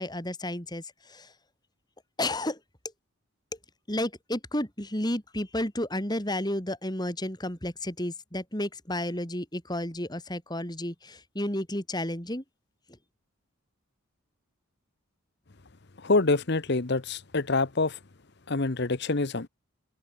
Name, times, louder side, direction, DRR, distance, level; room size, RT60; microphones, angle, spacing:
voice 1, 0.0-1.3 2.2-2.6 3.9-12.4, left 1 dB, 20° left, 3.9 m, -32 dB
voice 2, 16.0-18.0 18.5-19.5, left 3 dB, 50° left, 1.0 m, -26 dB
open air
head